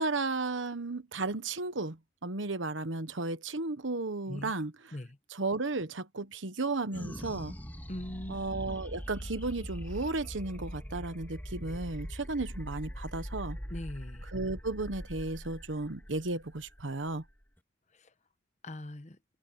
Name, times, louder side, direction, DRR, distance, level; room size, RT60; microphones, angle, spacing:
voice 1, 0.0-4.7 5.3-7.5 8.3-13.6 14.3-17.2, right 3 dB, 75° right, 1.2 m, -34 dB
sound 1, 6.9-17.6, equal, 10° left, 3.0 m, -42 dB
voice 2, 7.9-8.4 13.7-14.3 17.9-18.1 18.6-19.2, left 1 dB, 35° left, 1.1 m, -41 dB
head